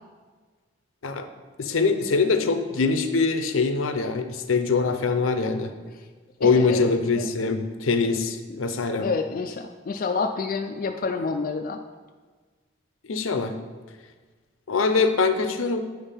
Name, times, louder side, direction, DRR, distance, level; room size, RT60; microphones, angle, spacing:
voice 1, 1.6-5.7 6.4-9.1 13.1-13.5 14.7-15.8, left 4 dB, 80° left, 8 dB, 0.6 m, -23 dB
voice 2, 6.4-7.4 8.5-8.6 9.0-11.8, left 4 dB, 45° left, 5 dB, 0.3 m, -29 dB
9.2 x 3.5 x 5.6 m, 1.4 s
head